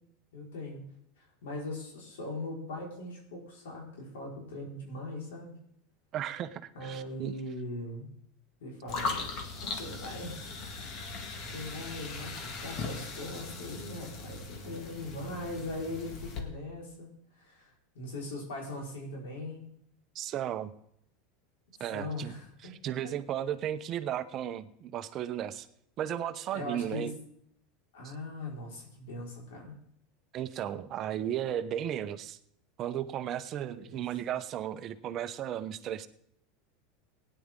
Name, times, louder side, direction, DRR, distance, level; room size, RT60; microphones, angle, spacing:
voice 1, 0.3-0.8 1.2-5.6 6.7-8.1 8.6-9.3 9.6-11.1 11.5-19.7 21.8-22.7 26.5-27.2 27.9-29.8 33.8-34.0, left 1 dB, 90° left, -2 dB, 4.6 m, -40 dB
voice 2, 6.1-7.3 20.1-20.7 21.8-22.3 22.8-25.7 26.0-27.1 30.3-32.4 32.8-36.1, right 10 dB, 35° right, 12 dB, 0.8 m, -35 dB
sound 1, 8.9-16.4, left 4 dB, 45° left, 2.0 m, -39 dB
17.0 x 10.0 x 3.7 m, 0.68 s
supercardioid pair, 140°, 0 cm